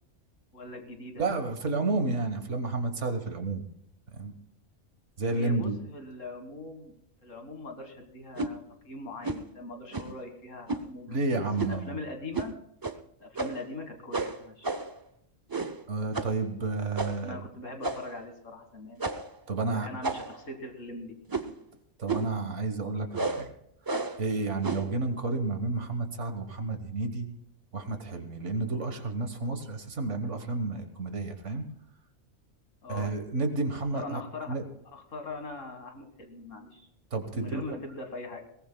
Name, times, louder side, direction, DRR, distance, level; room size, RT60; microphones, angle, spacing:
voice 1, 0.5-1.2 5.3-7.0 7.2-11.2 11.7-12.5 13.2-14.7 17.2-19.0 19.6-21.2 32.8-33.1 33.9-34.6 34.9-36.9 37.3-38.4, left 2 dB, 75° left, 5 dB, 2.2 m, -41 dB
voice 2, 1.2-3.6 4.1-4.3 5.2-5.8 11.1-12.0 15.9-17.4 19.5-19.9 22.0-23.5 24.2-27.3 27.7-31.7 32.9-34.2 34.5-34.6 37.1-37.8, right 3 dB, 65° right, 7 dB, 1.7 m, -31 dB
sound 1, 8.4-8.6 9.2-9.5 9.9-10.2 10.7-10.9 11.6-11.9 12.3-12.5 12.8-13.0 13.4-13.7 14.1-15.0 15.5-15.8 16.1-16.4 17.0-17.3 17.8-18.2 19.0-19.4 20.0-20.5 21.3-21.6 22.1-22.4 23.1-23.5 23.9-24.2 24.6-24.9, right 3 dB, 35° right, 0.3 m, -32 dB
21.0 x 18.0 x 2.3 m, 0.78 s
omnidirectional pair, 1.3 m